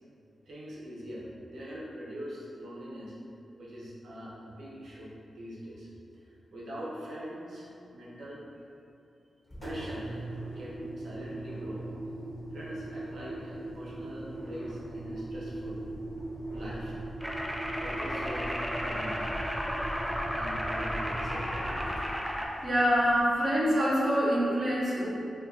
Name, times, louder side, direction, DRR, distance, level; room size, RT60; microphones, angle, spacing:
voice 1, 0.5-3.1 3.6-5.9 6.1-8.7 9.6-10.3 10.5-11.8 12.5-15.9 16.5-17.3 17.8-19.3 20.3-22.1, equal, 80° right, -6 dB, 0.7 m, -43 dB
Engine, 9.5-23.4, right 1 dB, 20° left, 0.8 m, -39 dB
sound 1, 17.2-22.5, equal, ahead, 0.3 m, -34 dB
voice 2, 22.6-25.1, equal, 45° right, -6 dB, 0.8 m, -25 dB
2.5 x 2.4 x 3.7 m, 2.6 s
cardioid pair, 65°, 0 cm